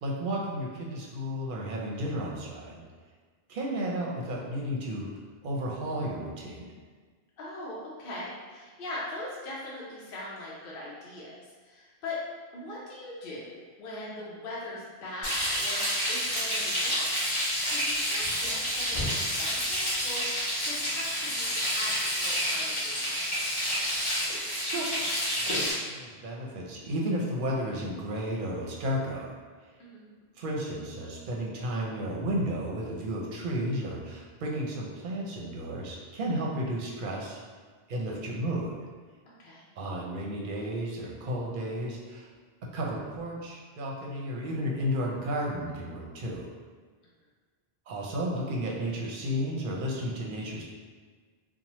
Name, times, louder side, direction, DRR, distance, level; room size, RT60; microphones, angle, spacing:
voice 1, 0.0-2.8 3.5-5.1 5.4-6.6 24.3-24.9 25.2-29.3 30.4-37.4 37.9-38.7 39.8-42.3 42.7-46.5 47.9-50.6, equal, 60° right, -2 dB, 0.7 m, -33 dB
voice 2, 7.4-12.2 12.5-17.1 17.7-23.4 29.8-30.1 39.3-39.6, left 1 dB, 65° left, -6 dB, 0.8 m, -41 dB
Frying (food), 15.2-25.7, equal, 25° left, 1.0 m, -29 dB
2.9 x 2.1 x 2.9 m, 1.5 s
omnidirectional pair, 1.1 m